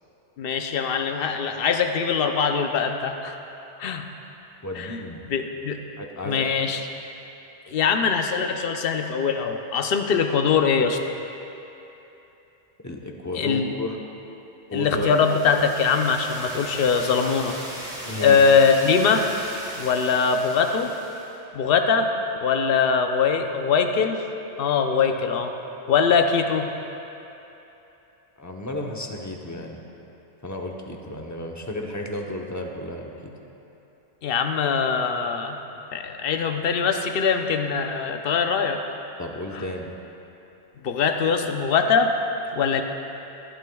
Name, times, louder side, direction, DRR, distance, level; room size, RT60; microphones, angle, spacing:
voice 1, 0.4-3.4 3.8-4.0 4.7-5.0 5.3-5.8 6.2-6.9 7.7-11.0 13.3-13.7 14.7-17.6 18.2-19.3 19.8-20.9 21.5-22.1 22.4-24.2 24.6-25.5 25.9-26.7 34.2-35.6 35.9-38.8 39.5-39.6 40.8-42.1 42.5-42.8, left 6 dB, 60° left, 5 dB, 0.9 m, -22 dB
voice 2, 4.6-5.2 6.0-6.4 12.8-14.0 14.7-15.2 15.4-15.5 18.0-18.4 28.4-29.8 30.4-33.3 39.2-39.9, left 1 dB, 15° left, 1 dB, 0.8 m, -32 dB
sound 1, 14.8-21.4, right 1 dB, 45° right, 2.2 m, -38 dB
19.0 x 11.5 x 2.3 m, 3.0 s
omnidirectional pair, 1.2 m